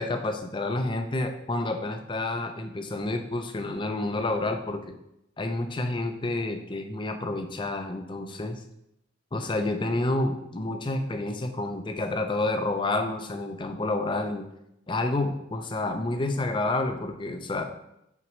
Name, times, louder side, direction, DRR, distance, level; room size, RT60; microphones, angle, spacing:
voice 1, 0.0-4.8 5.4-8.6 9.3-14.4 14.9-17.6, left 2 dB, 25° left, 6 dB, 0.5 m, -29 dB
5.8 x 5.2 x 3.1 m, 0.82 s
head